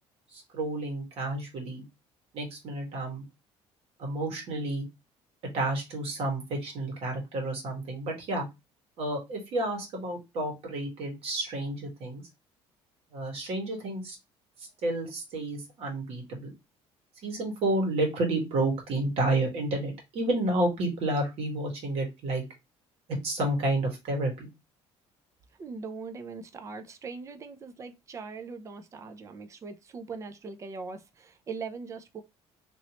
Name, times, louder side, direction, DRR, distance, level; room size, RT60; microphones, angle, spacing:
voice 1, 0.3-1.8 2.3-3.2 4.0-4.8 5.5-8.5 9.0-12.2 13.1-14.2 14.6-16.5 17.2-22.4 23.2-24.5, right 2 dB, 60° right, 1.6 m, -30 dB
voice 2, 25.6-32.2, right 4 dB, 25° right, 0.5 m, -41 dB
3.0 x 2.9 x 3.0 m
cardioid pair, 140°, 11 cm